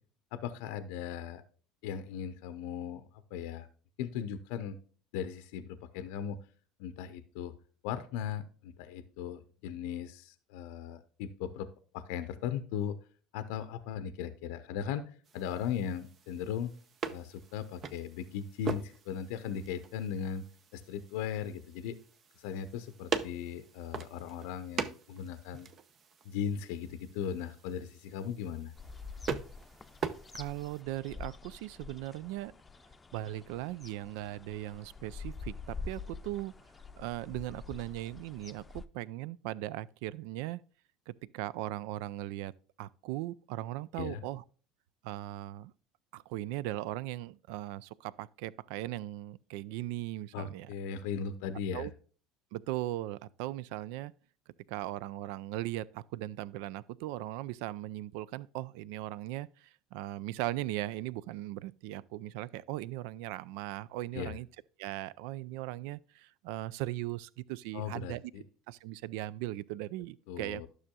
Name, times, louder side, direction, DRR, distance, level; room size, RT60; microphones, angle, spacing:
voice 1, 0.3-1.4 1.8-3.0 3.3-3.7 4.0-4.8 5.1-6.4 6.8-7.5 7.8-11.7 11.9-13.0 13.3-15.0 15.3-16.7 17.1-20.5 20.7-22.0 22.4-25.7 26.2-28.7 44.0-44.2 50.3-51.9 64.1-64.4 67.7-68.4 70.3-70.7, left 8 dB, 70° left, 0.6 m, -38 dB
sound 1, 15.2-30.8, right 6 dB, 45° right, 0.8 m, -42 dB
sound 2, 28.8-38.9, left 4 dB, 20° left, 0.7 m, -46 dB
voice 2, 30.3-32.5 33.1-36.5 37.0-40.6 41.1-42.5 42.8-44.4 45.0-45.7 46.1-50.7 51.7-51.9 52.5-54.1 54.7-64.5 64.8-68.2 68.7-70.7, right 15 dB, 70° right, 0.3 m, -38 dB
12.0 x 6.3 x 2.3 m
hypercardioid pair, 70°, 0 cm